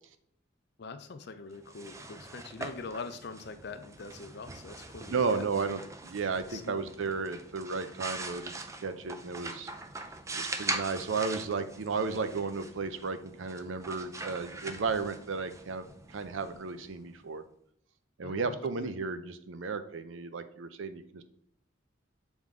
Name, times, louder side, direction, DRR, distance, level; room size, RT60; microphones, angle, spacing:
voice 1, 0.8-5.7 6.5-6.9 18.2-18.9, left 4 dB, 55° left, 9 dB, 0.5 m, -43 dB
sound 1, 1.5-17.2, right 3 dB, 15° right, 0.4 m, -42 dB
voice 2, 5.1-8.5 8.8-9.7 10.3-17.4 18.2-21.2, right 4 dB, 80° right, 11 dB, 0.6 m, -34 dB
7.2 x 3.5 x 3.7 m, 0.68 s
head